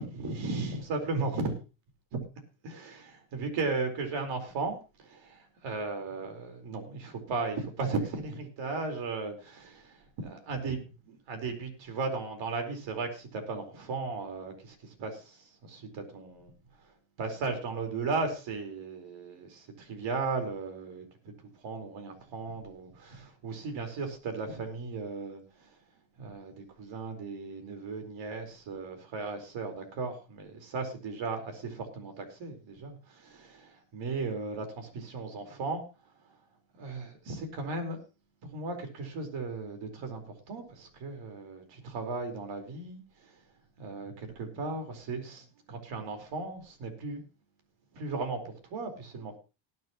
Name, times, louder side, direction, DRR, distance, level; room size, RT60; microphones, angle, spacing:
voice 1, 0.0-1.6 2.1-2.2 2.6-16.5 16.8-16.9 17.2-21.3 21.6-25.7 26.2-35.8 36.7-38.0 38.5-43.4 43.8-47.2 47.9-49.4, right 3 dB, 65° right, 6 dB, 4.5 m, -36 dB
19.0 x 9.9 x 3.1 m, 0.31 s
supercardioid pair, 90°, 48 cm